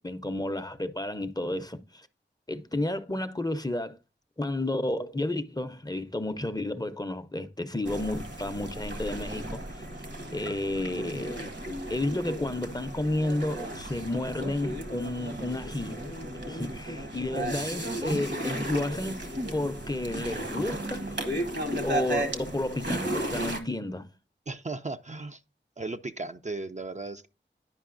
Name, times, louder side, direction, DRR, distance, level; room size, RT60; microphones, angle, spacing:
voice 1, 0.0-2.1 2.5-4.0 4.4-9.8 10.3-11.4 11.9-16.0 16.5-19.2 19.5-21.4 21.8-24.1, left 1 dB, 20° left, 0.5 m, -31 dB
sound 1, 7.9-23.6, right 1 dB, 65° right, 1.2 m, -34 dB
voice 2, 24.5-25.4 25.8-27.3, right 3 dB, 40° right, 0.4 m, -36 dB
10.5 x 5.2 x 2.5 m
wide cardioid pair, 45°, 20 cm